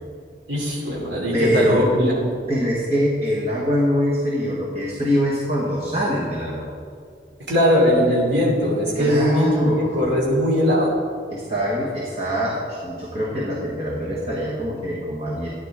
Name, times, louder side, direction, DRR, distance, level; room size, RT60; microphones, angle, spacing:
voice 1, 0.5-2.1 7.5-11.0, equal, 80° right, -3 dB, 3.1 m, -20 dB
voice 2, 1.3-1.9 2.5-6.7 8.9-10.0 11.3-15.5, equal, 35° right, -5 dB, 1.6 m, -23 dB
13.5 x 10.5 x 3.7 m, 2.2 s
head